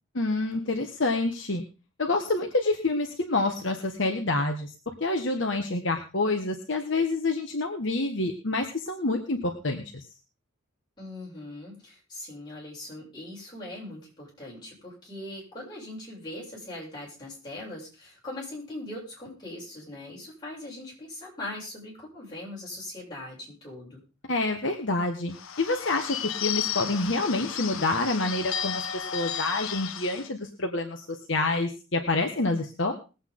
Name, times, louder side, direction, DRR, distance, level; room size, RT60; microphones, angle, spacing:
voice 1, 0.1-1.6 2.0-4.7 5.0-9.8 24.3-32.9, left 2 dB, 60° left, 3 dB, 1.5 m, -27 dB
voice 2, 11.0-24.0, left 1 dB, 20° left, -6 dB, 7.5 m, -40 dB
Bird / Bell, 25.3-30.3, left 9 dB, 80° left, 0.9 m, -33 dB
21.0 x 8.3 x 3.9 m, 0.32 s
head